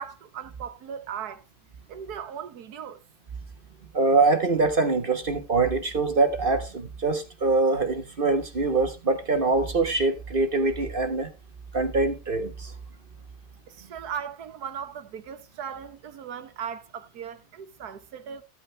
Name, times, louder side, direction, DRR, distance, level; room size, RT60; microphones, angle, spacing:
voice 1, 0.0-1.4 1.9-3.0 13.7-18.4, right 8 dB, 80° right, 1.6 m, -38 dB
voice 2, 3.9-11.3 11.7-12.7, right 3 dB, 40° right, 1.3 m, -24 dB
14.5 x 8.5 x 3.3 m
omnidirectional pair, 1.6 m